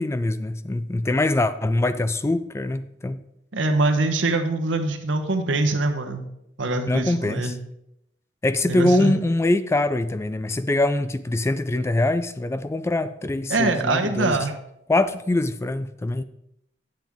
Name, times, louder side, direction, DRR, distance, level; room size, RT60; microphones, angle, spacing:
voice 1, 0.0-3.2 6.9-7.5 8.4-14.4 14.9-16.2, left 2 dB, 15° left, 13 dB, 0.3 m, -23 dB
voice 2, 3.5-6.2 6.6-7.5 8.6-9.1 13.5-14.5, right 2 dB, 90° right, 6 dB, 1.0 m, -23 dB
9.1 x 7.6 x 3.6 m, 0.80 s
head